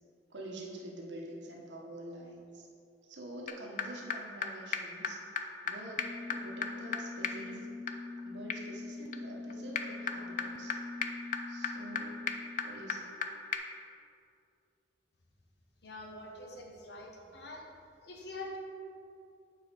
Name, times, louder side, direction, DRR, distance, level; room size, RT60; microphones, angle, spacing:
voice 1, 0.3-2.7 3.0-7.7 8.2-10.8 11.5-12.2 12.6-13.2, right 1 dB, 80° right, -1 dB, 1.1 m, -47 dB
sound 1, 3.5-3.6 3.8-3.9 4.1-4.2 4.4-4.5 4.7-4.8 5.0-5.1 5.4-5.5 5.7-5.8 6.0-13.3 13.5-13.6, left 6 dB, 45° left, 0.4 m, -37 dB
voice 2, 15.8-17.7 18.0-18.6, left 2 dB, 65° left, 0 dB, 1.1 m, -45 dB
7.0 x 4.3 x 5.1 m, 2.6 s
head